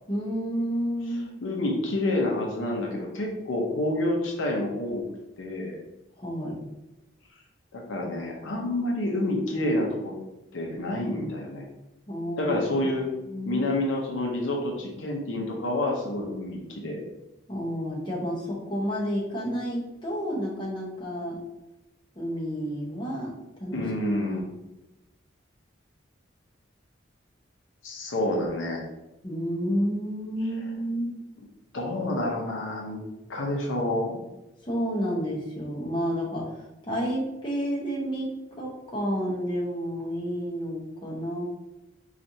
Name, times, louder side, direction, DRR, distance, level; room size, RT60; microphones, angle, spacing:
voice 1, 0.1-1.3 6.2-6.6 12.1-12.6 13.3-13.6 17.5-21.4 22.2-23.3 23.6-23.8 29.2-31.1 34.6-36.5 36.9-38.3 38.6-41.4, equal, 25° left, -4 dB, 0.8 m, -30 dB
voice 2, 1.1-5.0 5.4-5.8 7.7-10.1 10.5-11.6 12.4-13.1 13.5-17.1 23.7-24.4 27.8-28.8 31.7-33.0 33.3-34.2, left 1 dB, 80° left, 0 dB, 0.7 m, -28 dB
4.3 x 2.4 x 2.6 m, 0.95 s
head